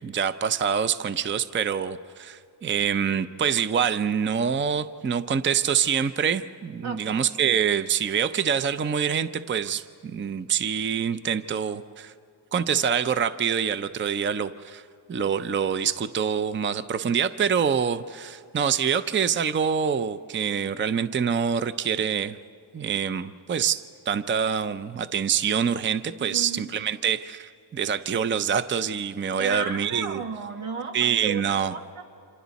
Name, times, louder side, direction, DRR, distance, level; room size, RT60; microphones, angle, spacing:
voice 1, 0.0-12.1 12.5-14.8 15.1-22.4 22.7-30.2 30.9-31.7, right 7 dB, 25° right, 13 dB, 0.5 m, -25 dB
voice 2, 6.8-7.3 26.2-26.6 29.4-32.0, right 5 dB, 90° right, 3 dB, 2.0 m, -34 dB
29.5 x 27.0 x 4.1 m, 2.4 s
wide cardioid pair, 105°, 48 cm